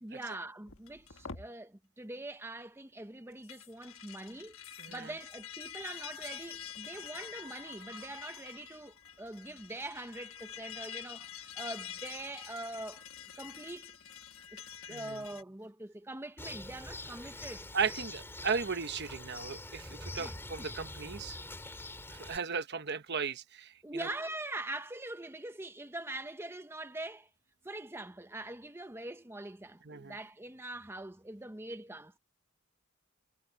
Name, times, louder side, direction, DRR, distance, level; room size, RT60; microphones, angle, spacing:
voice 1, 0.0-4.6 4.9-13.0 13.4-14.0 14.5-17.7 20.1-20.7 23.8-27.3 27.6-32.2, right 2 dB, 10° right, 0.9 m, -43 dB
sound 1, 0.7-1.5 3.3-15.4, left 8 dB, 65° left, 1.6 m, -47 dB
voice 2, 4.8-5.1 14.9-15.2 17.7-21.4 22.1-23.7 24.0-24.1 29.9-30.2, right 6 dB, 55° right, 1.1 m, -36 dB
Bird, 16.4-22.4, left 2 dB, 10° left, 3.5 m, -45 dB
head